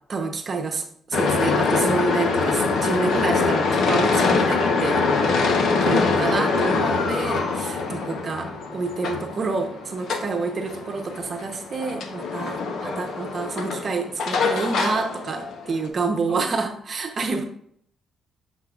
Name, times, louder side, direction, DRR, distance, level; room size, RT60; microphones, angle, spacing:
voice 1, 0.0-5.1 5.8-17.4, right 4 dB, 45° right, 4 dB, 0.9 m, -28 dB
sound 1, 1.1-15.9, left 4 dB, 70° left, 0.9 m, -24 dB
voice 2, 5.8-6.5 12.8-13.0 16.3-16.4, left 2 dB, 45° left, -3 dB, 2.7 m, -33 dB
7.5 x 5.9 x 2.4 m, 0.65 s
cardioid pair, 90°, 0 cm